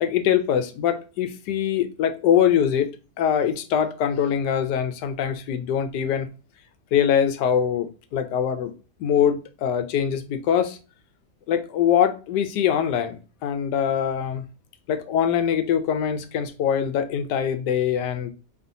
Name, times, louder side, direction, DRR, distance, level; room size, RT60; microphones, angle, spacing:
voice 1, 0.0-2.9 3.2-6.3 6.9-8.7 9.0-10.8 11.5-14.4 14.9-18.3, left 8 dB, 85° left, 1.2 m, -23 dB
4.3 x 3.1 x 2.6 m
omnidirectional pair, 1.7 m